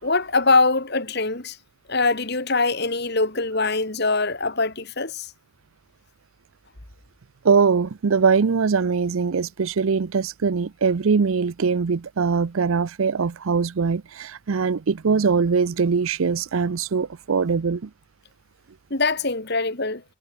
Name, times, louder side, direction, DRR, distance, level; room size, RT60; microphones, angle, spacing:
voice 1, 0.0-1.6 1.9-5.3 18.9-20.0, left 3 dB, 50° left, 2.4 m, -23 dB
voice 2, 7.4-17.9, right 5 dB, 70° right, 0.5 m, -22 dB
head